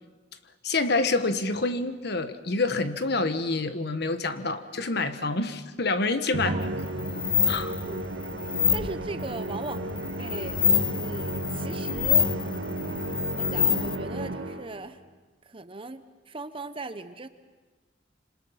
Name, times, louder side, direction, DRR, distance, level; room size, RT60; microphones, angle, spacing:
voice 1, 0.6-6.6 7.1-7.7, left 3 dB, 60° left, 10 dB, 1.4 m, -27 dB
Musical instrument, 6.3-14.9, right 2 dB, 80° right, 2.0 m, -33 dB
sound 1, 6.6-14.0, left 7 dB, 25° left, 0.8 m, -27 dB
voice 2, 8.7-9.8 10.2-10.6 11.0-12.3 13.3-15.0 15.4-17.3, right 3 dB, 30° right, 11 dB, 0.9 m, -38 dB
27.0 x 26.0 x 5.8 m, 1.3 s
head